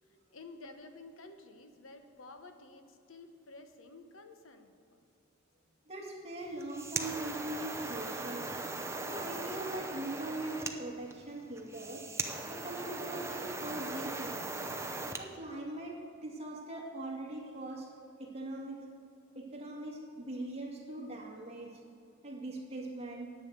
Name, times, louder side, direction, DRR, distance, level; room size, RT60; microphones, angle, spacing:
voice 1, 0.3-5.0, left 3 dB, 85° left, 7 dB, 1.1 m, -52 dB
voice 2, 5.9-8.5 8.9-12.1 12.5-14.4 15.2-17.9 18.2-18.8 19.3-21.7 22.2-23.3, right 1 dB, 30° right, -2 dB, 2.2 m, -41 dB
sound 1, 6.5-15.3, right 3 dB, 15° right, 0.7 m, -39 dB
10.5 x 8.8 x 6.9 m, 2.5 s
head